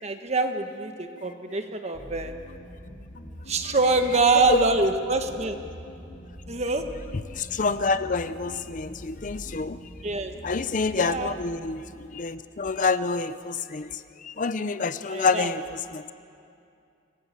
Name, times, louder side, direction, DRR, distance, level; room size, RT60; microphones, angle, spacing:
voice 1, 0.0-2.3 3.5-5.6 6.5-6.9 10.0-10.3 11.0-11.3 15.1-15.5, right 3 dB, 35° right, 6 dB, 1.3 m, -25 dB
sound 1, 1.9-11.6, equal, 70° left, 3.8 m, -43 dB
voice 2, 4.3-4.7 7.3-9.8 10.4-16.1, left 4 dB, 40° left, 13 dB, 0.5 m, -27 dB
26.0 x 19.0 x 7.5 m, 2.5 s
head